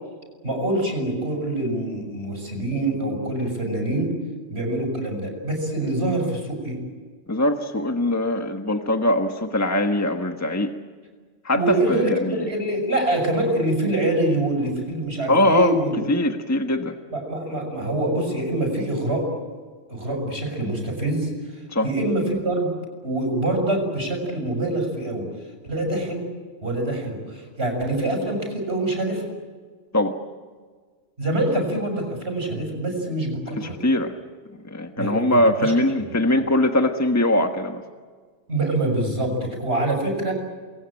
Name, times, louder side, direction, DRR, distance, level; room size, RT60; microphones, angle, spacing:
voice 1, 0.4-4.1 4.5-6.8 11.5-16.0 17.1-19.2 19.9-21.3 21.8-22.7 23.0-25.3 25.6-26.2 26.6-29.2 31.2-33.8 35.0-35.7 36.0-36.2 38.5-40.3, right 1 dB, 60° right, 3 dB, 7.4 m, -25 dB
voice 2, 7.3-10.7 11.4-12.5 15.3-15.8 16.1-16.9 21.7-21.9 29.9-30.1 33.5-34.1 34.6-37.8, left 1 dB, 15° left, 5 dB, 1.3 m, -21 dB
29.0 x 22.0 x 8.9 m, 1.5 s
omnidirectional pair, 1.2 m